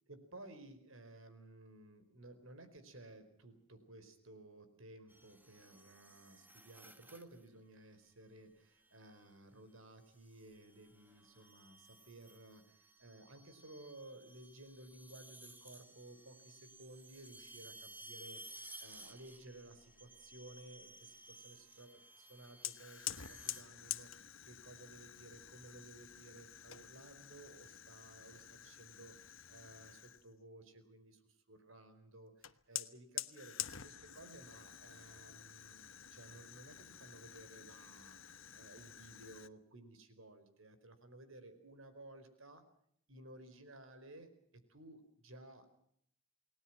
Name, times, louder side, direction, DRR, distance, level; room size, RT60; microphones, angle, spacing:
voice 1, 0.1-35.8 36.1-42.6 43.1-45.7, right 2 dB, 75° right, 10 dB, 4.6 m, -56 dB
sound 1, 5.1-7.5 8.8-9.2 10.1-23.6, right 2 dB, 10° right, 1.5 m, -57 dB
Fire, 22.6-30.3 32.4-39.5, left 12 dB, 70° left, 1.1 m, -48 dB
29.0 x 19.5 x 6.1 m, 0.69 s
head